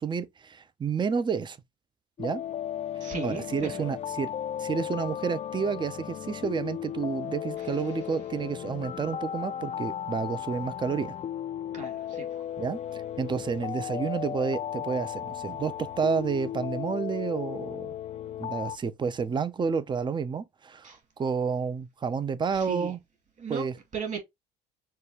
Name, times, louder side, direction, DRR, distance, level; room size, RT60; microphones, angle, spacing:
voice 1, 0.0-1.6 2.2-2.4 3.0-4.3 4.6-11.1 12.6-17.9 18.4-23.0 23.5-23.7, right 6 dB, 25° right, 0.5 m, -30 dB
sound 1, 2.2-18.8, left 10 dB, 35° left, 0.4 m, -35 dB
voice 2, 3.0-3.9 7.6-8.0 11.7-12.4 20.8-21.0 22.5-22.9 23.4-24.2, right 5 dB, 40° right, 2.3 m, -37 dB
6.6 x 2.3 x 2.8 m
hypercardioid pair, 70°, 20 cm